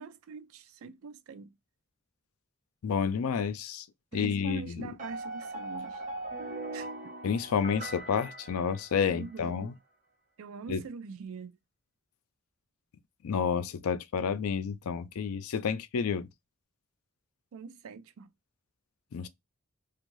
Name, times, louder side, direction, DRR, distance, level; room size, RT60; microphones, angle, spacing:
voice 1, 0.0-1.5 4.1-6.0 6.7-7.1 9.0-9.7 10.4-11.6 17.5-18.3, right 5 dB, 70° right, 0.4 m, -43 dB
voice 2, 2.8-3.9 4.1-4.9 7.2-9.7 10.7-10.8 13.2-16.3 19.1-19.3, left 6 dB, 85° left, 0.4 m, -30 dB
sound 1, 5.0-9.3, right 2 dB, 35° right, 0.9 m, -40 dB
2.6 x 2.4 x 3.0 m
head